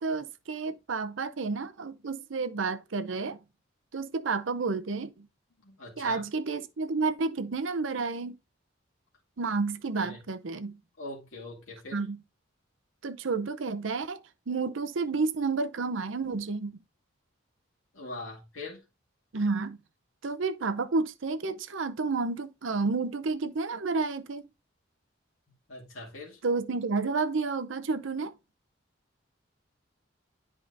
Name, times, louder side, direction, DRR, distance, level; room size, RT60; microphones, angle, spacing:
voice 1, 0.0-3.4 3.9-5.3 6.0-8.4 9.4-10.8 11.9-12.2 13.0-14.2 14.5-16.8 19.3-19.8 20.2-24.5 26.4-28.3, right 4 dB, 75° right, 0.7 m, -30 dB
voice 2, 5.6-6.2 10.0-10.2 11.0-12.1 17.9-18.8 25.7-26.4, left 2 dB, 90° left, 2.4 m, -42 dB
10.0 x 4.9 x 2.6 m
head